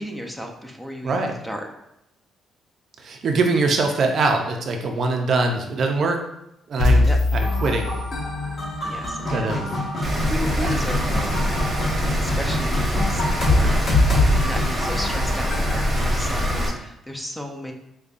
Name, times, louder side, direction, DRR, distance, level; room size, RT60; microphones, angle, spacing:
voice 1, 0.0-1.7 7.0-7.2 8.8-9.6 10.0-11.6 11.9-17.7, equal, 5° left, 2 dB, 0.5 m, -34 dB
voice 2, 1.0-1.4 3.0-6.2 6.7-7.9 9.3-9.7 10.6-10.8 12.0-12.2, right 3 dB, 55° right, 4 dB, 0.5 m, -23 dB
sound 1, 6.8-8.8, left 2 dB, 80° left, 0.7 m, -21 dB
sound 2, 7.4-16.6, left 1 dB, 45° left, 1.5 m, -25 dB
Rain, 10.0-16.7, equal, 15° right, 1.0 m, -24 dB
5.0 x 2.2 x 2.4 m, 0.83 s
cardioid pair, 90°, 0 cm